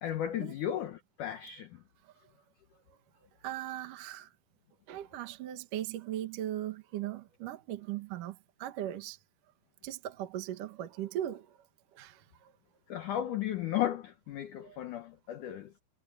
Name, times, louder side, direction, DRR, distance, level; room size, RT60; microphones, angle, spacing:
voice 1, 0.0-1.8 12.9-15.7, left 11 dB, 75° left, 1.8 m, -35 dB
voice 2, 3.4-4.3 4.9-9.2 9.8-11.6 11.9-12.5 14.6-14.8, right 12 dB, 60° right, 2.5 m, -39 dB
omnidirectional pair, 5.1 m